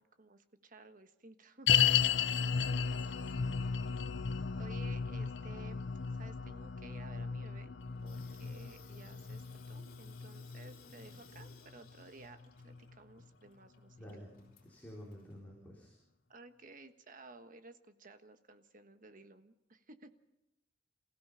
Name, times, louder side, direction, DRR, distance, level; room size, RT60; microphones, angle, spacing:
voice 1, 0.0-1.9 4.6-7.7 8.0-14.0 16.3-20.1, right 2 dB, 50° right, 8 dB, 1.4 m, -55 dB
sound 1, 1.7-13.0 13.2-13.3 14.0-14.1, left 7 dB, 75° left, 0.7 m, -34 dB
voice 2, 3.4-3.7 14.0-14.3 14.6-15.9, equal, 10° left, -4 dB, 4.6 m, -50 dB
Water tap faucet / Sink (filling or washing), 7.8-15.4, left 4 dB, 55° left, 4.9 m, -61 dB
28.0 x 16.5 x 5.7 m, 0.88 s
head